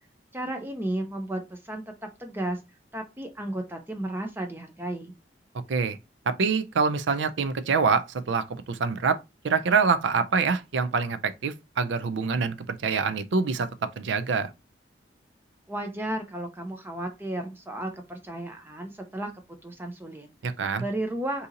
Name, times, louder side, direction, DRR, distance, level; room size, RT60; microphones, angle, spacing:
voice 1, 0.3-1.9 2.2-2.6 2.9-5.1 15.7-19.3 19.6-20.3 20.8-21.5, right 1 dB, 10° right, 0.4 m, -33 dB
voice 2, 6.3-9.2 9.4-13.7 14.0-14.5 20.4-20.8, right 5 dB, 80° right, 0.4 m, -25 dB
2.7 x 2.7 x 3.7 m
head